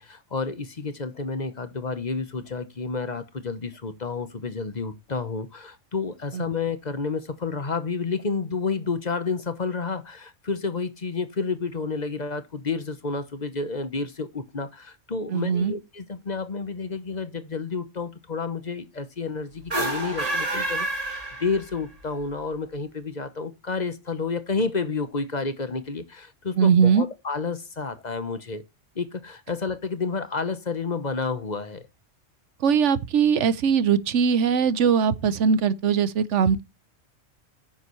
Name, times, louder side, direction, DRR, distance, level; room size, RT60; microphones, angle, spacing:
voice 1, 0.0-28.6 28.9-31.9, left 4 dB, 35° left, 1.1 m, -30 dB
voice 2, 15.3-15.7 26.6-27.0 32.6-36.6, right 6 dB, 75° right, 1.1 m, -21 dB
sound 1, 19.6-21.9, right 1 dB, 30° right, 2.4 m, -28 dB
9.8 x 7.6 x 3.1 m
omnidirectional pair, 1.3 m